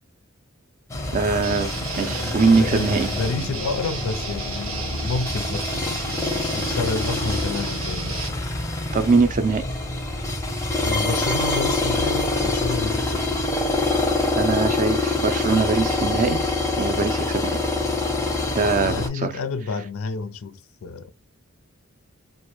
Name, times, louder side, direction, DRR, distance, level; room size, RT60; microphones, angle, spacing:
sound 1, 0.9-19.1, left 2 dB, 15° left, 0.5 m, -26 dB
voice 1, 1.1-3.1 8.9-9.6 14.4-16.4 16.8-17.6 18.5-19.3, right 4 dB, 40° right, 0.4 m, -22 dB
Guitar, 1.4-8.3, right 4 dB, 80° right, 0.8 m, -33 dB
voice 2, 2.2-8.5 10.8-13.5 18.8-21.1, left 4 dB, 80° left, 0.4 m, -30 dB
2.2 x 2.0 x 2.9 m
head